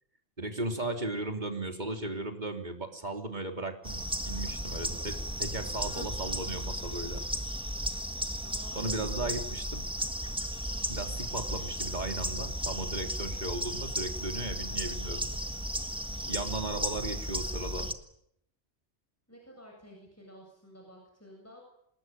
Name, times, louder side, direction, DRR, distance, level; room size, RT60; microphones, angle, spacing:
voice 1, 0.4-7.2 8.7-9.9 10.9-15.3 16.3-17.9, right 2 dB, 35° right, 4 dB, 3.7 m, -36 dB
sound 1, 3.8-17.9, equal, 5° right, 1.6 m, -35 dB
voice 2, 8.4-9.5 19.3-21.6, equal, 10° left, 0 dB, 7.9 m, -51 dB
27.5 x 20.5 x 9.4 m, 0.75 s
omnidirectional pair, 1.3 m